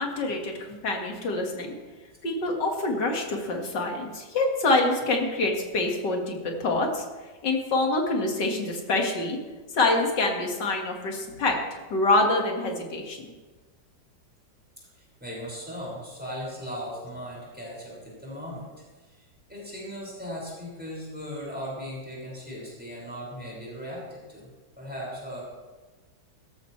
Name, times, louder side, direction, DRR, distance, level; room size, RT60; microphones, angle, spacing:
voice 1, 0.0-1.8 2.2-7.0 7.4-9.4 9.7-11.6 11.9-13.3, left 2 dB, 60° left, 1 dB, 2.6 m, -26 dB
voice 2, 15.0-18.7 19.1-24.5 24.8-25.4, equal, 5° right, -5 dB, 5.7 m, -38 dB
17.0 x 14.5 x 3.3 m, 1.3 s
omnidirectional pair, 2.2 m